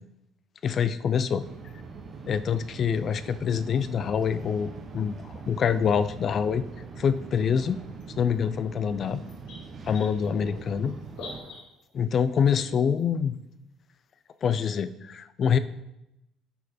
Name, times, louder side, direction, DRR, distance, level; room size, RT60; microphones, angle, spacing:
voice 1, 0.6-1.4 2.3-6.6 7.0-7.8 8.2-9.2 9.8-10.9 11.9-13.4 14.4-15.6, left 7 dB, 35° left, 13 dB, 0.3 m, -25 dB
sound 1, 1.4-11.4, right 5 dB, 35° right, 0.9 m, -42 dB
sound 2, 1.7-1.8 2.6-3.0 4.4-4.5 5.9-6.0 7.0-7.2 8.0-8.1 8.3-8.4 8.8-8.9 9.2-11.9 12.7-13.0 14.1-14.2 14.4-14.5, left 2 dB, 70° left, 2.4 m, -44 dB
9.0 x 4.5 x 4.2 m, 0.89 s
cardioid pair, 170°, 0 cm